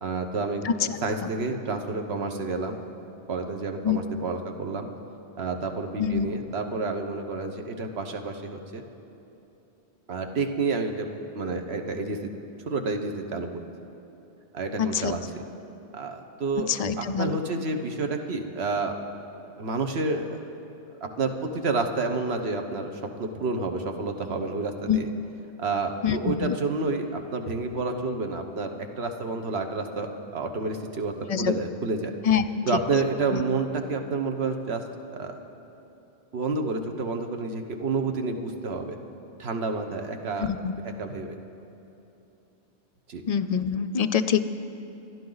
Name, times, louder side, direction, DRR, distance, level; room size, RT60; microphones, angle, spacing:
voice 1, 0.0-2.8 3.3-4.9 5.4-8.8 10.1-12.2 12.7-13.6 14.5-15.4 15.9-16.7 17.0-18.9 19.6-20.4 21.0-22.9 23.2-25.1 25.6-32.1 32.7-34.8 35.2-35.4 36.3-39.0 39.4-40.5 41.0-41.4 43.1-43.2, right 3 dB, 65° right, 5 dB, 1.3 m, -29 dB
voice 2, 14.8-15.1 16.7-17.4 24.9-25.0 26.0-26.6 31.3-31.5 32.2-32.4 33.3-33.4 40.4-40.7 43.3-44.4, left 8 dB, 60° left, 11 dB, 0.4 m, -25 dB
27.0 x 10.5 x 3.9 m, 2.9 s
omnidirectional pair, 1.1 m